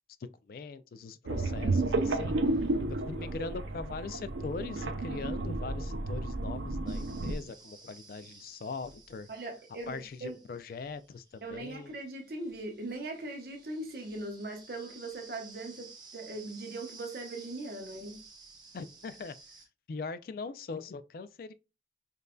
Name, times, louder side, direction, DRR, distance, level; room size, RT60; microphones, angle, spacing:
voice 1, 0.2-9.3 9.9-11.9 18.7-19.3 19.9-21.5, left 4 dB, 50° left, 0.3 m, -41 dB
sound 1, 1.3-7.4, right 2 dB, 90° right, 0.5 m, -32 dB
sound 2, 6.9-19.7, right 4 dB, 25° right, 0.9 m, -54 dB
voice 2, 9.3-10.4 11.4-18.2, right 2 dB, 55° right, 0.9 m, -40 dB
5.3 x 2.5 x 2.2 m
head